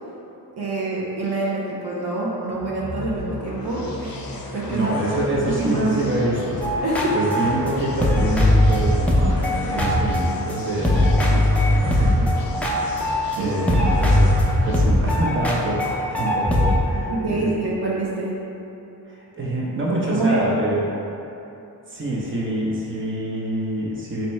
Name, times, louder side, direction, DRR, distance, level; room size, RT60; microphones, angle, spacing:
voice 1, 0.6-4.9 5.3-5.9 6.8-7.2 13.4-13.5 16.9-18.4 20.1-20.5, right 2 dB, 75° right, -5 dB, 0.8 m, -26 dB
sound 1, 2.5-16.3, left 2 dB, 65° left, 0.6 m, -35 dB
voice 2, 4.7-6.8 7.1-14.3 14.6-17.5 19.0-20.9 21.9-24.3, right 1 dB, 30° right, -5 dB, 0.8 m, -26 dB
sound 2, 6.6-10.5 10.8-13.4 13.7-16.8, left 1 dB, 5° left, 0.5 m, -20 dB
3.3 x 2.9 x 4.2 m, 3.0 s
cardioid pair, 65°, 39 cm